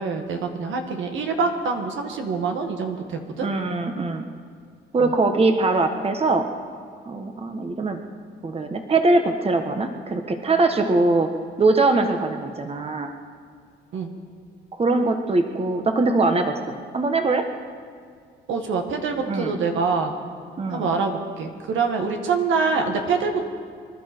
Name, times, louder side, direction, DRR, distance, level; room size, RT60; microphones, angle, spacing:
voice 1, 0.0-3.5 5.0-5.1 13.9-14.1 18.5-20.1 20.7-23.4, right 4 dB, 80° right, 4 dB, 1.8 m, -25 dB
voice 2, 3.4-4.2 4.9-6.5 7.0-8.0 8.4-11.3 11.6-13.1 14.8-17.4 19.3-19.6 20.6-20.9, right 3 dB, 30° right, 5 dB, 1.2 m, -22 dB
25.5 x 12.0 x 4.5 m, 2.1 s
cardioid pair, 90°, 20 cm